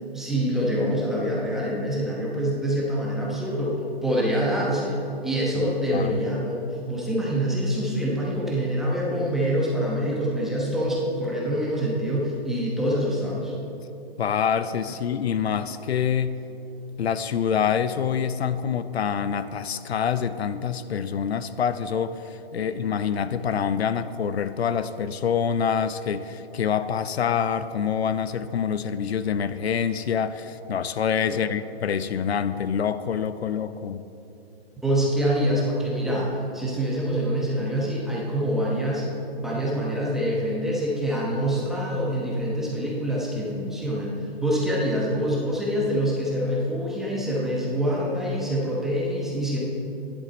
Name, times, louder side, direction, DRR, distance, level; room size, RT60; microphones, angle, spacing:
voice 1, 0.1-13.5 22.6-23.0 31.3-31.4 34.8-39.1 39.4-44.1 44.4-49.6, equal, ahead, -5 dB, 0.9 m, -25 dB
voice 2, 5.6-6.2 14.2-16.4 17.0-34.0, left 7 dB, 80° left, 13 dB, 0.6 m, -26 dB
12.0 x 10.5 x 4.1 m, 2.9 s
hypercardioid pair, 155°, 32 cm